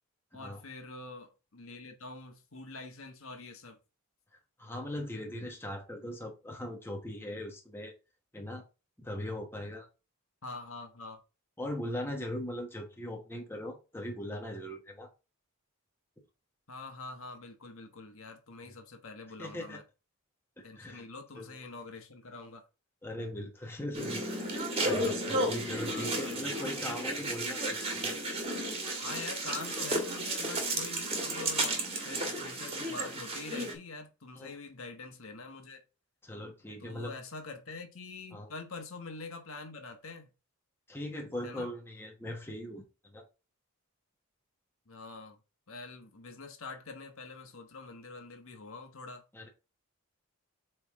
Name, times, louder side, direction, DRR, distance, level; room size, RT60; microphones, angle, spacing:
voice 1, 0.3-3.8 10.4-11.2 16.7-19.8 20.6-22.6 25.8-26.7 29.0-35.8 36.8-40.3 41.4-41.7 44.9-45.4 45.7-49.2, left 3 dB, 65° left, 1.3 m, -45 dB
voice 2, 4.6-7.9 8.3-8.6 9.0-9.9 11.6-15.1 19.4-19.8 20.8-21.0 21.3-21.6 23.0-28.2 34.3-34.5 36.2-37.1 38.3-38.5 40.9-43.2 49.3-49.5, left 1 dB, 10° left, 1.1 m, -40 dB
sound 1, 23.9-33.7, right 1 dB, 25° right, 1.5 m, -33 dB
7.9 x 3.4 x 3.6 m
head